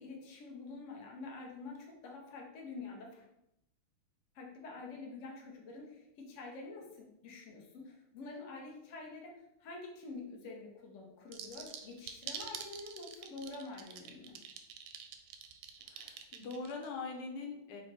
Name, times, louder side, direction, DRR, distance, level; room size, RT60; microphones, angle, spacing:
voice 1, 0.0-3.3 4.3-14.4, left 3 dB, 55° left, -1 dB, 0.8 m, -47 dB
sound 1, 11.3-16.9, right 8 dB, 85° right, 1.5 m, -45 dB
voice 2, 15.9-17.8, left 4 dB, 85° left, 2 dB, 1.7 m, -42 dB
3.8 x 2.8 x 4.6 m, 0.85 s
omnidirectional pair, 2.4 m